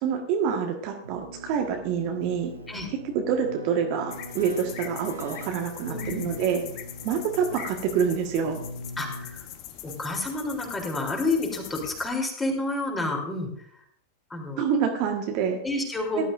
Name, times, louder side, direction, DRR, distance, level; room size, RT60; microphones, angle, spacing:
voice 1, 0.0-2.5 3.1-6.6 7.0-8.6 14.6-15.6 16.2-16.3, right 7 dB, 45° right, 3 dB, 1.6 m, -27 dB
Keyboard (musical), 1.0-9.7, equal, 80° right, 2.6 m, -41 dB
sound 1, 4.1-12.1, left 11 dB, 40° left, 1.1 m, -42 dB
voice 2, 5.9-6.3 9.0-9.5 9.8-13.7 14.3-14.6 15.6-16.3, left 2 dB, 15° left, 1 dB, 3.4 m, -29 dB
18.5 x 12.0 x 2.6 m, 0.66 s
figure-of-eight pair, 90°, 0 cm